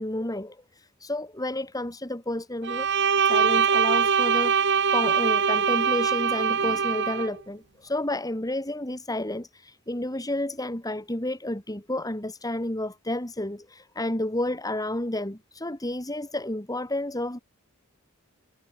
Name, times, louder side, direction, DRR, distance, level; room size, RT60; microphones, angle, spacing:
voice 1, 0.0-2.9 3.3-17.4, left 1 dB, 15° left, 3.6 m, -31 dB
Bowed string instrument, 2.6-7.3, right 6 dB, 55° right, 1.7 m, -23 dB
head